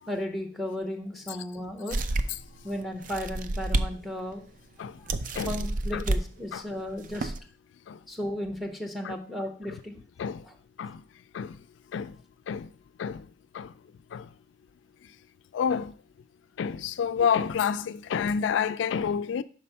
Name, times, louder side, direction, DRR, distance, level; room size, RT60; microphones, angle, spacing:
voice 1, 0.1-2.0 2.6-4.4 5.0-5.1 5.4-7.3 8.1-10.0 10.4-10.5, left 1 dB, ahead, 1.0 m, -34 dB
sound 1, 1.9-2.5 3.0-3.9 4.3-4.4 5.1-6.2 6.9-7.4, right 2 dB, 45° right, 0.4 m, -29 dB
voice 2, 15.5-15.9 16.6-19.4, left 7 dB, 85° left, 0.3 m, -28 dB
5.9 x 4.3 x 5.5 m
head